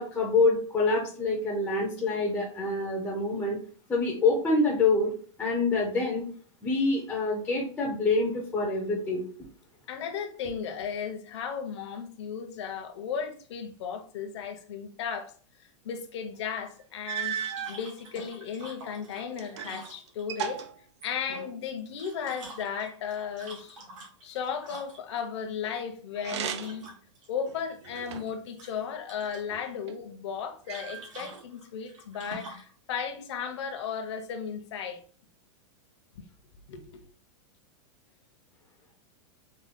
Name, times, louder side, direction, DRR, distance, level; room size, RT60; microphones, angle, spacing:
voice 1, 0.0-3.6 3.9-5.1 5.4-6.2 6.6-9.2, left 3 dB, 5° left, 0.3 m, -26 dB
voice 2, 9.9-15.3 15.6-17.4 17.7-20.6 21.0-23.8 24.2-26.8 27.3-35.0 36.7-37.0, left 7 dB, 65° left, 0.6 m, -35 dB
sound 1, 16.5-16.6 17.0-17.8 18.6-19.8 20.1-21.6 26.2-26.9 27.5-28.5 29.2-30.0 30.7-31.4, right 8 dB, 65° right, 0.4 m, -37 dB
sound 2, 17.4-20.5 21.8-25.2 26.5-27.3 27.6-28.3 28.6-29.4 30.7-32.7, right 2 dB, 85° right, 1.3 m, -47 dB
3.6 x 2.0 x 3.5 m
supercardioid pair, 180°, 16 cm